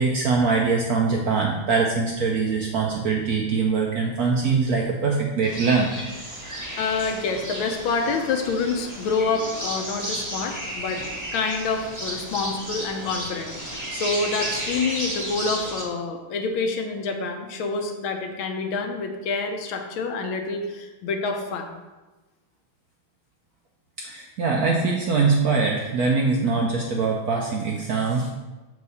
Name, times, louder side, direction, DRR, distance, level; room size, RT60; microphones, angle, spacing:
voice 1, 0.0-5.9 24.0-28.3, right 4 dB, 70° right, 0 dB, 0.9 m, -23 dB
sound 1, 5.4-15.8, right 1 dB, 10° right, 1.0 m, -33 dB
voice 2, 6.8-11.0 11.3-21.8, left 4 dB, 80° left, 5 dB, 1.6 m, -27 dB
6.7 x 4.7 x 4.1 m, 1.2 s
omnidirectional pair, 2.2 m